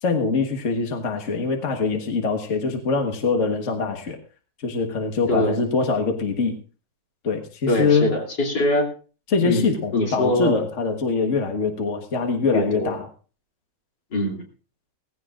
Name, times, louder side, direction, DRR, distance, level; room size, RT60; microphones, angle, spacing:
voice 1, 0.0-4.2 4.6-6.5 7.2-8.1 9.3-13.1, left 4 dB, 45° left, 4 dB, 1.7 m, -23 dB
voice 2, 7.7-8.9 9.4-10.6 12.5-13.0 14.1-14.4, left 1 dB, 80° left, 0 dB, 3.6 m, -23 dB
18.5 x 15.5 x 2.5 m, 0.37 s
omnidirectional pair, 1.9 m